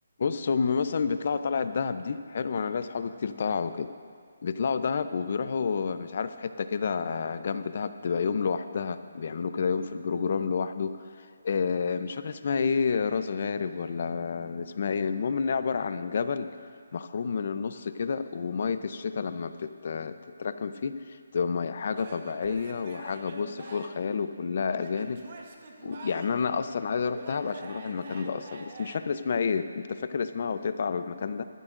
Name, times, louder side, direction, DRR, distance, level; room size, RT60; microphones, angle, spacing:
voice 1, 0.2-3.9 4.4-16.5 16.9-25.2 25.8-31.4, left 5 dB, 50° left, 11 dB, 0.7 m, -30 dB
Male speech man speaking / Yell / Laughter, 21.9-24.1 24.8-26.5 27.1-29.0, right 3 dB, 45° right, 1.5 m, -45 dB
20.5 x 14.0 x 2.6 m, 2.2 s
hypercardioid pair, 160°, 0 cm